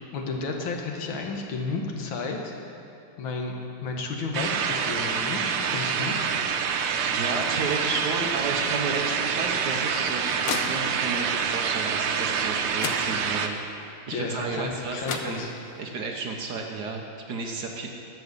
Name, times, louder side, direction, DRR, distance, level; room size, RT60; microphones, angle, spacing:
voice 1, 0.1-2.5 3.2-3.5 3.8-6.3 14.1-15.5, left 3 dB, 70° left, 2 dB, 1.8 m, -32 dB
sound 1, 4.3-13.5, right 6 dB, 85° right, 1.6 m, -27 dB
voice 2, 7.0-13.6 14.1-15.4 15.8-17.9, right 3 dB, 60° right, 2 dB, 1.2 m, -32 dB
sound 2, 9.6-11.2 12.4-12.5 12.8-13.6 14.7-14.8 15.0-15.9, left 6 dB, 85° left, 1.6 m, -35 dB
10.5 x 7.2 x 6.6 m, 2.7 s
omnidirectional pair, 2.4 m